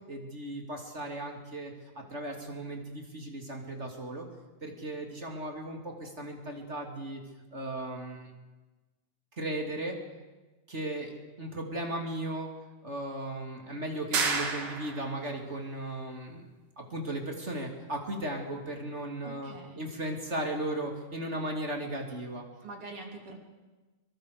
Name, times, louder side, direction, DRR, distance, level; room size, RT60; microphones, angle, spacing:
voice 1, 0.1-4.3 4.6-7.2 7.5-8.3 9.4-10.0 10.7-11.1 11.4-12.5 12.8-16.5 16.8-22.4, right 1 dB, 20° right, 1 dB, 2.9 m, -36 dB
sound 1, 14.1-15.2, right 4 dB, 60° right, 4.1 m, -30 dB
voice 2, 19.2-19.9 22.6-23.4, right 3 dB, 40° right, 1 dB, 4.0 m, -44 dB
24.5 x 23.5 x 6.8 m, 1.2 s
omnidirectional pair, 4.2 m